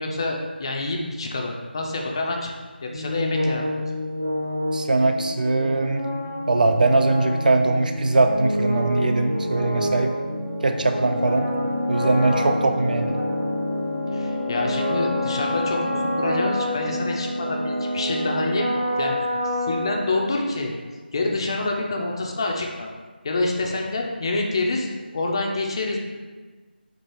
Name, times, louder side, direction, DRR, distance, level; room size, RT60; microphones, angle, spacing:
voice 1, 0.0-2.5 2.8-3.8 14.1-18.7 19.0-19.2 19.6-20.7 21.1-22.9 23.2-26.0, left 2 dB, 30° left, 0 dB, 0.5 m, -27 dB
sound 1, 2.9-20.6, left 1 dB, 30° right, 1.0 m, -27 dB
voice 2, 4.7-6.1 6.5-10.1 10.6-11.5 11.9-13.2, right 2 dB, 50° right, 6 dB, 0.3 m, -21 dB
4.5 x 2.4 x 4.6 m, 1.3 s
figure-of-eight pair, 170°, 6 cm